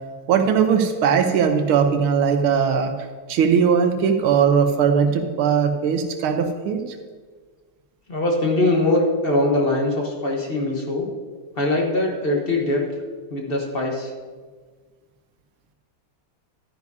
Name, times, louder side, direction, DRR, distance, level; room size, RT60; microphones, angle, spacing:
voice 1, 0.3-2.9 3.3-7.0, right 7 dB, 85° right, 6 dB, 1.7 m, -19 dB
voice 2, 8.1-11.1 11.6-12.8 13.3-14.1, left 2 dB, 35° left, 0 dB, 1.2 m, -22 dB
12.5 x 9.5 x 2.7 m, 1.5 s
omnidirectional pair, 2.3 m